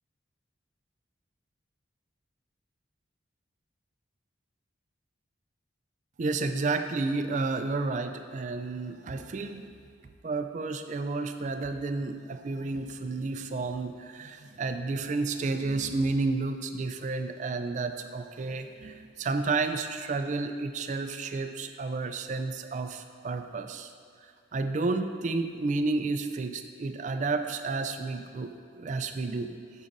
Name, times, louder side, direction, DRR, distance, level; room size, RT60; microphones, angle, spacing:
voice 1, 6.2-9.7 10.2-23.9 24.5-29.5, right 3 dB, 40° right, 7 dB, 0.3 m, -31 dB
7.2 x 6.3 x 3.9 m, 2.2 s
head